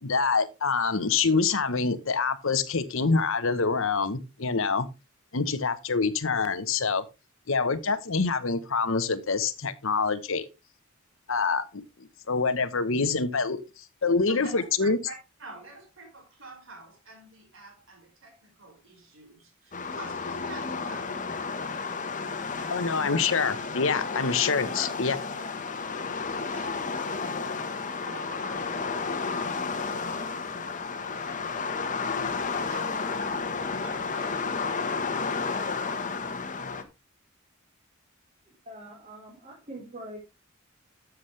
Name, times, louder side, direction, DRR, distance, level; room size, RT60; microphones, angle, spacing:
voice 1, 0.0-4.9 5.3-7.0 7.5-10.5 11.3-11.8 12.3-13.6 14.0-15.0 22.7-25.2, left 4 dB, 70° left, 1.1 m, -26 dB
voice 2, 14.3-23.7 24.7-25.5 26.3-31.8 32.5-36.1, right 2 dB, 65° right, 5.4 m, -48 dB
sound 1, 19.7-36.8, left 4 dB, 40° left, 1.3 m, -32 dB
voice 3, 38.7-40.2, right 1 dB, 35° right, 4.4 m, -43 dB
13.0 x 7.4 x 3.3 m
head